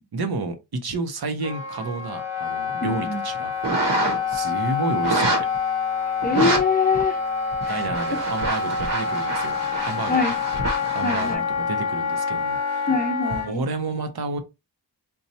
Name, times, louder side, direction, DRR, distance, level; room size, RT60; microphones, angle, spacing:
voice 1, 0.1-3.5 4.3-5.5 7.7-9.5 9.8-10.4 10.9-12.9 13.3-14.4, right 3 dB, 65° right, 0.7 m, -30 dB
Wind instrument woodwind instrument, 1.4-13.5, left 5 dB, 40° left, 0.8 m, -27 dB
voice 2, 2.8-3.2 6.2-7.2 7.6-7.8 10.1-10.3 11.0-11.4 12.9-13.6, left 4 dB, 25° left, 0.5 m, -23 dB
sound 1, 3.6-4.3 5.0-5.6 6.2-6.6 6.9-7.0 7.5-11.3, right 3 dB, 85° right, 1.0 m, -26 dB
2.7 x 2.2 x 4.0 m
wide cardioid pair, 110°, 41 cm